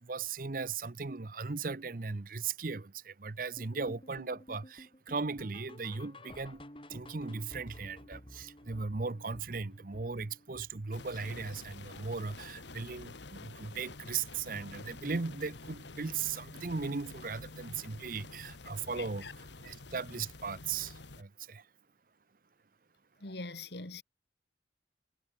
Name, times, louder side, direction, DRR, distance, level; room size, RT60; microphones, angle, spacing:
voice 1, 0.0-6.6 6.9-21.6, right 4 dB, 50° right, 0.8 m, -38 dB
sound 1, 3.6-12.7 13.0-13.3 13.6-13.7 14.2-14.3 14.8-14.9, left 1 dB, 30° left, 6.7 m, -53 dB
sound 2, 10.9-21.2, left 3 dB, 85° left, 1.7 m, -49 dB
voice 2, 19.0-19.3 23.2-24.0, left 3 dB, 70° left, 2.4 m, -43 dB
head